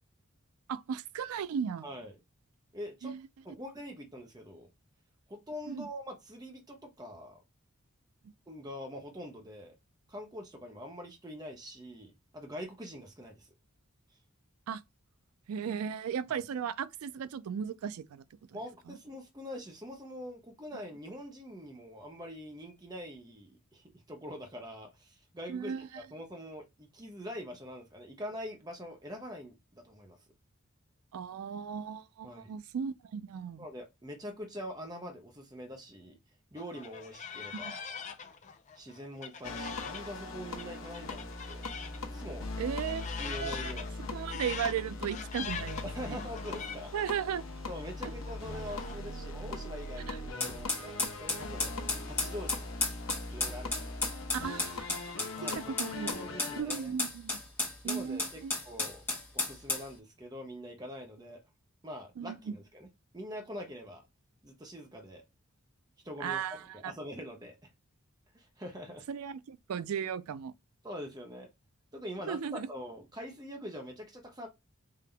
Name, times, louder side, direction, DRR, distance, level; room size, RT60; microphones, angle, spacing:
voice 1, 0.7-1.9 3.0-3.2 5.7-5.9 14.7-14.8 15.5-18.2 18.9-19.0 25.5-25.9 31.1-33.7 37.5-37.8 42.6-43.7 44.1-46.2 46.9-47.5 48.0-48.1 50.1-50.2 54.3-56.1 56.6-57.4 57.8-58.5 62.2-62.5 66.2-66.9 69.1-70.5 72.3-72.7, right 7 dB, 85° right, 0.4 m, -36 dB
voice 2, 1.8-2.1 2.7-3.1 3.4-4.7 5.3-7.4 8.5-9.7 10.1-13.5 16.3-16.4 18.5-30.2 32.2-32.5 33.6-36.2 36.5-38.0 38.8-41.6 42.1-42.5 43.2-44.0 45.8-46.9 47.7-51.7 52.1-52.9 53.3-54.2 55.4-55.7 56.0-56.9 57.8-59.0 59.3-61.4 61.8-62.9 63.1-64.0 64.4-65.2 66.0-67.7 68.3-69.0 70.8-71.5 71.9-74.5, equal, 15° right, 0.8 m, -44 dB
sound 1, 36.6-42.0 42.2-49.0, left 7 dB, 35° left, 0.4 m, -43 dB
sound 2, 39.4-56.6, left 2 dB, 70° left, 1.0 m, -40 dB
sound 3, 50.4-59.9, left 2 dB, 10° left, 1.2 m, -34 dB
3.8 x 2.8 x 3.3 m
head